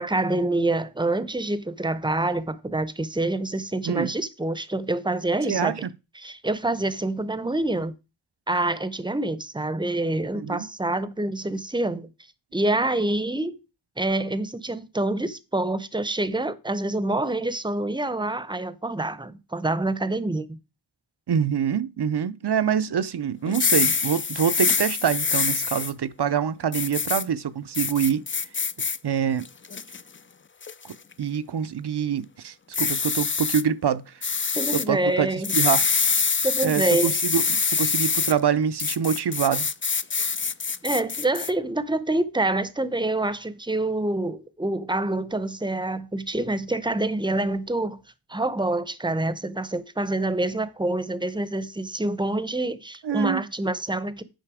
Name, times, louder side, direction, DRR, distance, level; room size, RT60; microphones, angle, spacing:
voice 1, 0.0-5.7 6.2-7.9 8.5-12.1 12.5-13.6 14.0-20.6 34.5-35.5 36.4-37.1 40.8-48.0 48.3-54.2, right 2 dB, 10° right, 0.8 m, -26 dB
voice 2, 5.5-5.9 10.3-10.7 21.3-28.2 29.0-29.5 30.8-34.2 34.7-35.9 36.6-39.7 53.0-53.4, right 8 dB, 70° right, 0.7 m, -25 dB
sound 1, 23.5-25.9 26.7-27.2 27.7-29.0 29.4-30.0 30.6-30.9 32.7-33.6 34.2-34.9 35.4-38.3 38.8-41.5, left 5 dB, 30° left, 0.5 m, -25 dB
9.0 x 5.6 x 4.9 m
wide cardioid pair, 70°, 41 cm